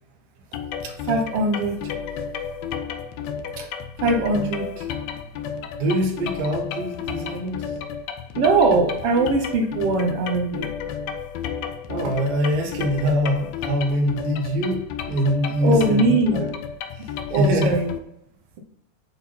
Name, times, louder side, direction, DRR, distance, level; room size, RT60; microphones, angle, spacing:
sound 1, 0.5-18.0, left 7 dB, 85° left, 1.5 m, -32 dB
voice 1, 0.8-1.9 3.6-3.7 4.0-4.9 8.3-10.7 15.6-16.4 17.3-17.9, right 3 dB, 65° right, 4 dB, 1.5 m, -21 dB
voice 2, 5.8-7.8 11.9-16.5 17.0-17.8, equal, 85° right, 1 dB, 3.0 m, -24 dB
9.5 x 4.0 x 4.2 m, 0.74 s
omnidirectional pair, 3.8 m